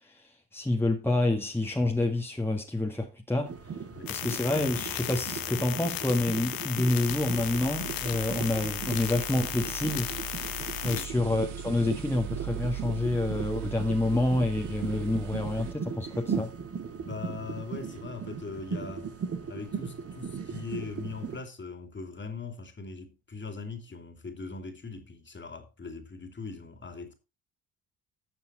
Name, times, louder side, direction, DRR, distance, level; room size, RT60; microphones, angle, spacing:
voice 1, 0.0-3.5 4.1-10.1 10.8-16.5, left 2 dB, 5° left, 1.8 m, -28 dB
sound 1, 3.4-21.4, right 6 dB, 35° right, 1.8 m, -38 dB
sound 2, 4.1-11.1, left 13 dB, 55° left, 1.2 m, -36 dB
sound 3, 7.1-15.7, right 12 dB, 75° right, 1.7 m, -40 dB
voice 2, 10.8-11.3 17.0-19.1 19.5-27.1, left 4 dB, 25° left, 2.9 m, -40 dB
13.0 x 6.8 x 4.3 m
hypercardioid pair, 60°, 41 cm